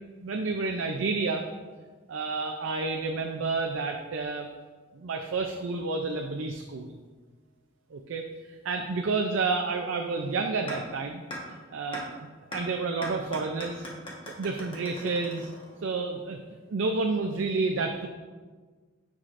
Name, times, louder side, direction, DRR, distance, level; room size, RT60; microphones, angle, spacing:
voice 1, 0.2-1.4 2.1-4.5 4.9-6.9 7.9-11.2 11.5-13.9 14.4-15.5 15.8-16.4 16.7-18.1, right 3 dB, 85° right, 3 dB, 0.5 m, -30 dB
sound 1, 10.7-10.8 11.3-11.4 11.9-12.0 12.5-12.6 13.0-15.9, left 1 dB, 25° left, 1.3 m, -39 dB
9.8 x 4.9 x 2.5 m, 1.4 s
head